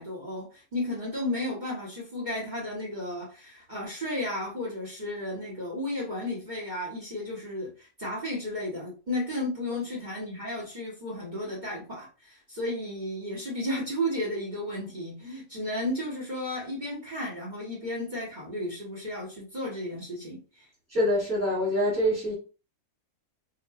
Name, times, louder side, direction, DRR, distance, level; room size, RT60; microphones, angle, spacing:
voice 1, 0.0-20.7, left 1 dB, 35° right, 1.2 m, -33 dB
voice 2, 20.9-22.3, equal, 10° left, 1.1 m, -25 dB
3.6 x 2.4 x 2.3 m
omnidirectional pair, 1.5 m